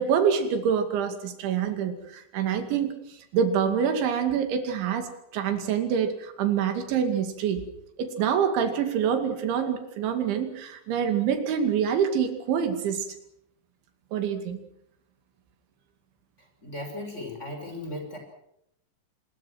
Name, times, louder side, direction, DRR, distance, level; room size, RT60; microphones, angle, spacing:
voice 1, 0.0-3.0 3.3-7.7 8.0-13.1 14.1-14.6, right 7 dB, 80° right, 7 dB, 4.8 m, -26 dB
voice 2, 16.6-18.2, left 1 dB, 15° left, 4 dB, 6.0 m, -36 dB
27.0 x 21.0 x 6.1 m, 0.75 s
omnidirectional pair, 5.3 m